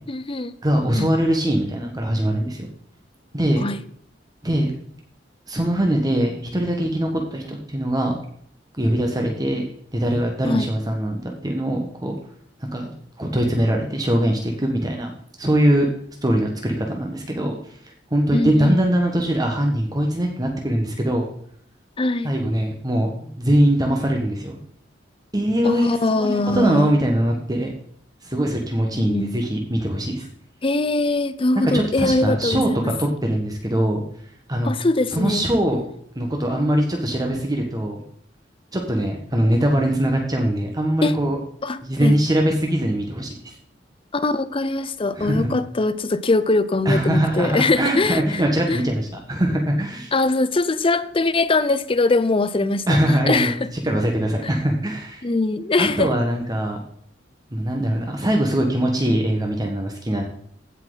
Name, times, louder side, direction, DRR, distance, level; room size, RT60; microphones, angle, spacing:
voice 1, 0.1-0.5 0.9-1.1 3.6-3.8 10.4-10.7 18.3-18.8 22.0-22.3 25.6-26.9 28.9-29.4 30.6-32.9 34.6-35.5 41.0-41.2 41.6-42.2 44.1-48.8 50.1-53.6 54.4-54.6 55.2-56.2, left 2 dB, 30° left, 0.6 m, -22 dB
voice 2, 0.6-2.7 3.3-3.6 4.4-4.7 5.5-8.2 8.8-12.2 12.7-15.1 15.4-15.9 16.2-17.6 18.1-21.2 22.2-24.6 25.3-27.7 28.2-30.3 31.5-34.0 34.5-34.7 35.1-35.8 36.1-38.0 38.7-41.4 41.8-43.5 45.2-45.5 46.8-50.1 52.9-53.5 53.8-55.2 55.8-56.8 57.5-60.2, right 1 dB, 20° right, 1.3 m, -22 dB
15.5 x 5.8 x 3.9 m
head